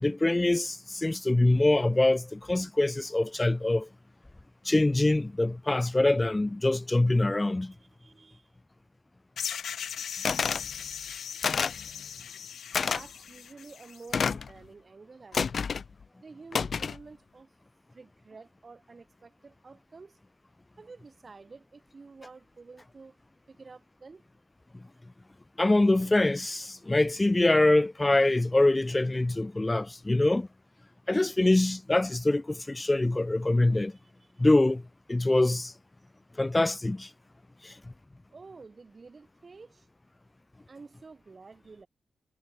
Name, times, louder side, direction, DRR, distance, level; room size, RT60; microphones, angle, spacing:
voice 1, 0.0-3.9 4.7-7.7 25.6-30.5 31.1-33.9 34.4-34.8 35.1-35.7 36.4-37.1 37.6-37.7, left 2 dB, 15° left, 0.3 m, -24 dB
voice 2, 7.7-8.5 10.5-11.2 12.8-15.7 16.2-17.5 17.9-20.2 20.8-23.2 23.5-24.2 38.3-39.9 40.7-41.9, right 4 dB, 35° right, 3.7 m, -50 dB
sound 1, 9.4-14.1, left 8 dB, 75° left, 4.7 m, -39 dB
sound 2, 10.3-10.7 11.4-11.8 12.7-13.0 14.1-14.5 15.3-15.9 16.5-17.0, left 6 dB, 50° left, 1.6 m, -28 dB
wide cardioid pair, 135°, 0 cm